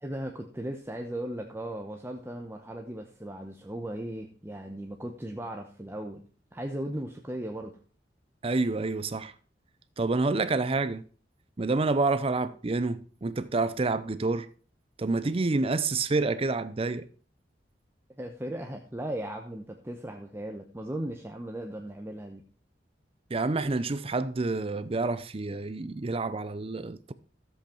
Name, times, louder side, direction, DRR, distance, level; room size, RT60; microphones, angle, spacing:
voice 1, 0.0-6.2 6.5-7.8 18.1-22.4, right 1 dB, 15° right, 0.9 m, -37 dB
voice 2, 8.4-9.3 10.0-11.1 11.6-14.5 15.0-17.1 23.3-27.1, right 3 dB, 30° right, 0.5 m, -28 dB
13.5 x 7.8 x 4.4 m
head